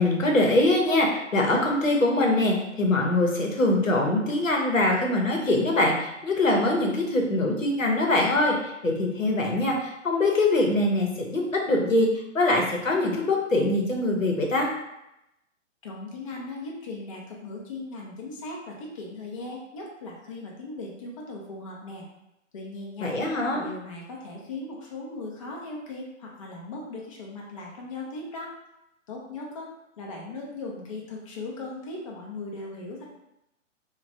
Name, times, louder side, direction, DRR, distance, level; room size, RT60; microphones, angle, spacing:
voice 1, 0.0-12.1 12.3-14.7 23.0-23.6, left 2 dB, 90° left, -1 dB, 0.8 m, -23 dB
voice 2, 15.8-22.0 22.5-23.1 23.5-28.5 29.1-33.0, left 2 dB, 30° left, -2 dB, 0.4 m, -38 dB
3.1 x 2.2 x 2.6 m, 0.86 s
figure-of-eight pair, 120°, 38 cm